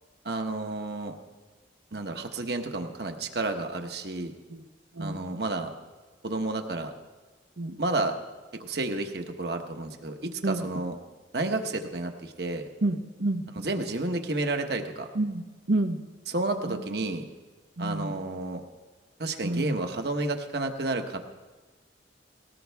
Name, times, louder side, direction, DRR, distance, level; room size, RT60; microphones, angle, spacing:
voice 1, 0.2-1.1 1.9-4.3 5.0-5.7 6.2-6.9 7.8-8.1 8.5-10.9 11.3-12.7 13.6-15.1 16.3-17.2 17.8-18.6 19.2-21.2, right 2 dB, 55° right, 5 dB, 1.1 m, -31 dB
voice 2, 12.8-13.4 15.1-16.0 16.6-16.8 17.8-18.1 19.4-19.8, right 2 dB, 80° right, 8 dB, 1.0 m, -29 dB
18.5 x 18.0 x 3.5 m, 1.3 s
head